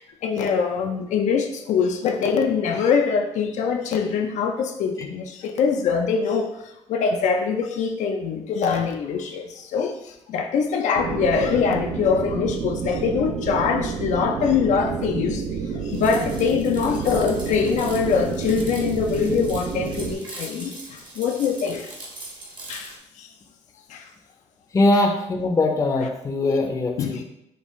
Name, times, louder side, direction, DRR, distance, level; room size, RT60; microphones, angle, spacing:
voice 1, 0.0-15.4 15.8-21.9 22.7-23.3 23.9-24.1 27.0-27.2, left 6 dB, 75° left, 4 dB, 0.4 m, -23 dB
sound 1, 11.0-20.1, right 6 dB, 65° right, 0.4 m, -29 dB
sound 2, 15.9-23.0, right 2 dB, 40° right, 1.0 m, -41 dB
voice 2, 24.7-27.2, left 2 dB, 25° left, 2 dB, 0.6 m, -21 dB
5.2 x 2.4 x 3.1 m, 0.82 s
cardioid pair, 130°, 12 cm